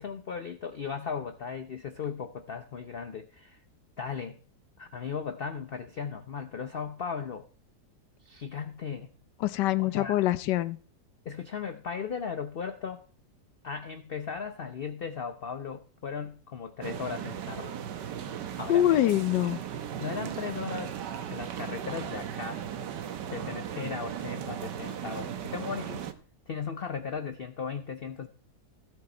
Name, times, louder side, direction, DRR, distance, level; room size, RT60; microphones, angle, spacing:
voice 1, 0.0-3.6 4.0-4.4 4.8-7.4 8.2-9.1 9.8-10.2 11.2-13.0 13.6-17.7 18.5-18.9 20.0-20.9 21.3-22.7 23.3-26.0 26.5-28.3, left 6 dB, 65° left, 9 dB, 0.5 m, -37 dB
voice 2, 9.4-10.8 18.7-19.6, left 13 dB, 85° left, 15 dB, 1.3 m, -24 dB
sound 1, 16.8-26.1, right 9 dB, 80° right, 1.5 m, -37 dB
15.5 x 7.6 x 4.3 m, 0.43 s
omnidirectional pair, 1.8 m